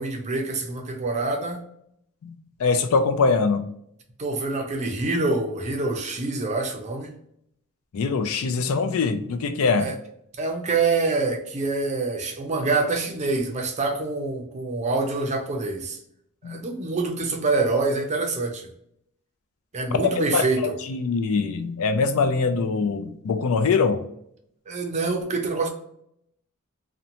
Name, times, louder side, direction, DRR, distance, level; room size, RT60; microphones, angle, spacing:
voice 1, 0.0-1.6 4.2-7.1 9.8-10.0 10.4-16.0 16.4-18.7 19.7-20.8 24.7-25.7, right 3 dB, 30° right, 3 dB, 0.5 m, -26 dB
voice 2, 2.2-3.7 7.9-9.9 16.4-16.6 20.3-20.4 20.9-24.0, left 4 dB, 65° left, 8 dB, 0.4 m, -23 dB
2.8 x 2.1 x 2.5 m, 0.72 s
head